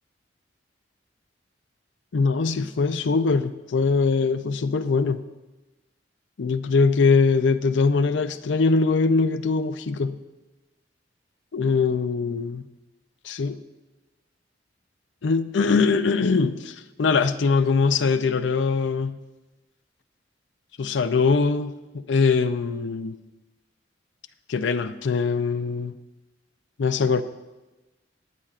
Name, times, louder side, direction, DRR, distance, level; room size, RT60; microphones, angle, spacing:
voice 1, 2.1-5.2 6.4-10.2 11.5-12.7 13.2-13.6 15.2-19.2 20.8-21.7 22.1-23.2 24.5-25.9 26.8-27.2, left 4 dB, 75° left, 0.5 m, -22 dB
19.0 x 9.7 x 2.5 m
head